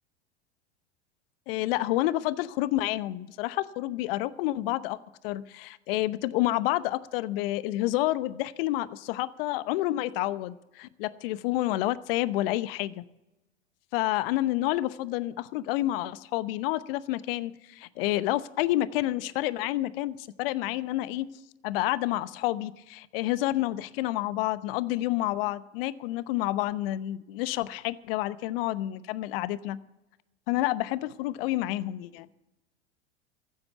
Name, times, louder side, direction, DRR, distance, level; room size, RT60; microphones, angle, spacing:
voice 1, 1.5-5.0 5.2-13.0 13.9-21.3 21.6-29.8 30.5-32.3, left 16 dB, 60° left, 16 dB, 0.9 m, -29 dB
15.0 x 7.9 x 8.2 m, 0.97 s
hypercardioid pair, 85°, 33 cm